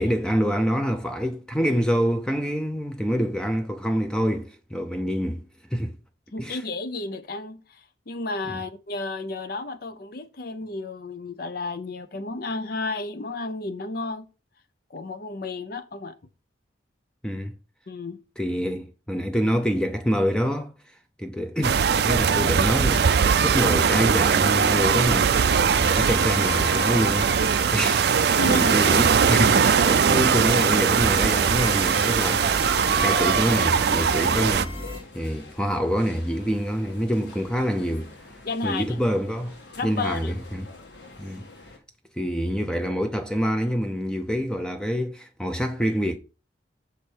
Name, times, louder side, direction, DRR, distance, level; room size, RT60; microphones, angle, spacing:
voice 1, 0.0-5.4 5.7-6.0 6.4-6.6 17.2-17.5 18.4-20.7 21.2-25.4 25.7-34.8 35.1-38.1 38.6-40.7 41.2-41.5 42.2-46.2, equal, 5° left, 0.5 m, -26 dB
voice 2, 6.3-14.3 14.9-16.2 17.9-18.2 28.4-28.8 38.4-39.0 39.8-40.4, left 3 dB, 50° left, 0.6 m, -32 dB
sound 1, 21.6-34.6, right 6 dB, 55° right, 0.4 m, -20 dB
sound 2, 22.0-41.8, left 2 dB, 65° left, 1.7 m, -46 dB
sound 3, 24.1-35.0, left 4 dB, 30° left, 1.5 m, -36 dB
6.5 x 5.0 x 4.5 m
head